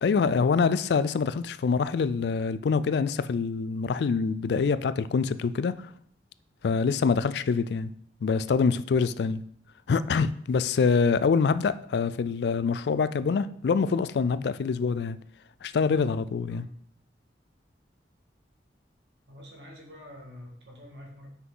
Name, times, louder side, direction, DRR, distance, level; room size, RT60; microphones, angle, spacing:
voice 1, 0.0-5.9 6.6-7.9 8.2-9.4 9.9-15.2 15.6-16.6, left 5 dB, 70° left, 0.3 m, -25 dB
voice 2, 19.3-21.3, left 1 dB, 75° right, 1.8 m, -46 dB
5.9 x 5.7 x 3.8 m
head